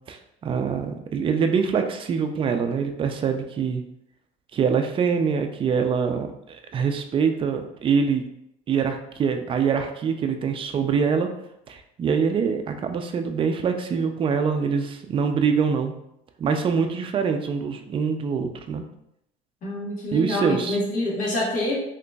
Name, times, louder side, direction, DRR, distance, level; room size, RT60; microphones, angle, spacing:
voice 1, 0.1-3.8 4.5-8.2 8.7-11.3 11.7-15.9 16.4-18.8 20.1-20.8, right 6 dB, 30° right, 6 dB, 0.4 m, -24 dB
voice 2, 19.6-21.8, left 1 dB, 50° left, -3 dB, 1.4 m, -26 dB
3.7 x 2.9 x 2.3 m, 0.80 s
supercardioid pair, 105°, 17 cm